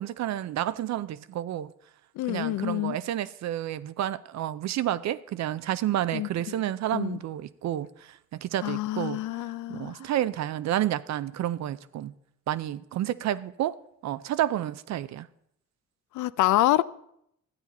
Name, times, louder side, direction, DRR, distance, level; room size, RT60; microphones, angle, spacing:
voice 1, 0.0-1.7 2.3-9.2 9.7-12.1 12.5-13.8 14.0-15.3, right 12 dB, 65° right, 0.5 m, -30 dB
voice 2, 2.2-3.0 6.1-6.6 6.9-7.2 8.6-10.1 16.1-16.8, left 16 dB, 80° left, 0.5 m, -27 dB
13.0 x 9.0 x 4.1 m
cardioid pair, 90°, 30 cm